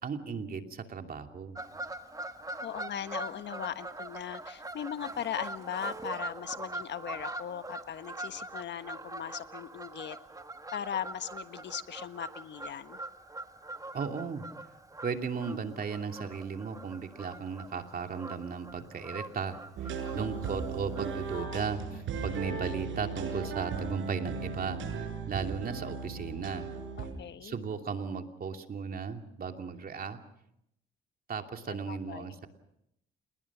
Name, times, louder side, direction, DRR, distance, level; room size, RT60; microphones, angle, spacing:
voice 1, 0.0-1.6 13.9-14.4 15.0-26.7 27.4-30.2 31.3-32.5, right 5 dB, 45° right, 5 dB, 2.8 m, -36 dB
Fowl / Bird vocalization bird call bird song, 1.5-21.4, right 2 dB, 15° right, 1.9 m, -43 dB
voice 2, 2.6-10.2 10.7-13.0 21.3-21.6 21.9-22.0 27.0-27.5 31.7-32.4, left 9 dB, 65° left, 11 dB, 1.4 m, -39 dB
sound 1, 19.8-27.1, right 5 dB, 75° right, 6.6 m, -37 dB
29.5 x 20.5 x 6.2 m, 0.79 s
cardioid pair, 90°, 20 cm